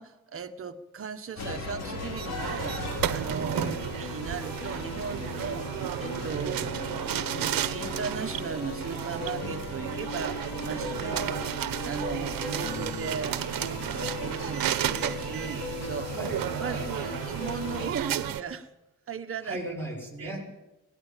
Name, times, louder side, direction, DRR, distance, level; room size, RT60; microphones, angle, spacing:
voice 1, 0.0-11.2 11.8-16.1 16.6-18.7 19.1-19.6 20.2-20.3, right 6 dB, 40° right, 7 dB, 1.5 m, -37 dB
sound 1, 1.4-17.9, left 4 dB, 50° left, 2.8 m, -38 dB
sound 2, 1.8-18.4, right 11 dB, 80° right, 1.2 m, -33 dB
voice 2, 3.5-3.9 6.4-6.7 11.0-11.4 16.0-17.2 19.4-20.5, right 1 dB, 5° left, -1 dB, 6.9 m, -38 dB
21.0 x 18.5 x 7.5 m, 0.97 s
cardioid pair, 165°, 34 cm